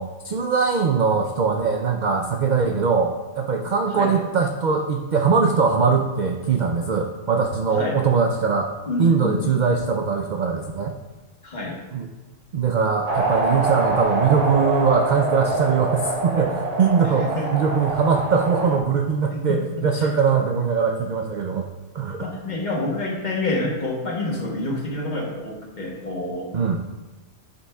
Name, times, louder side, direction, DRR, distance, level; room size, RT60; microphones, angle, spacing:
voice 1, 0.0-8.7 9.0-11.0 11.9-12.1 12.5-21.7 21.9-22.3 26.5-26.8, right 5 dB, 70° right, 3 dB, 0.4 m, -21 dB
voice 2, 8.8-9.5 11.4-11.8 17.0-17.5 19.3-20.1 22.2-26.5, left 2 dB, 40° left, -1 dB, 1.1 m, -28 dB
sound 1, 13.1-18.8, right 3 dB, 35° right, 0.8 m, -25 dB
9.4 x 5.7 x 2.3 m, 1.2 s
omnidirectional pair, 1.4 m